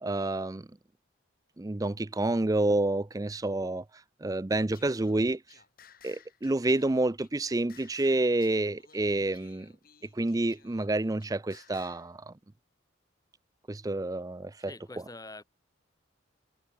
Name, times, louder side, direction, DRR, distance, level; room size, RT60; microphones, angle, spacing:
voice 1, 0.0-0.6 1.6-5.6 6.0-9.7 10.1-12.3 13.7-14.7, right 2 dB, 15° right, 0.4 m, -29 dB
Singing, 4.5-12.1, left 7 dB, 45° left, 4.1 m, -57 dB
voice 2, 14.7-15.4, left 2 dB, 15° left, 4.1 m, -45 dB
head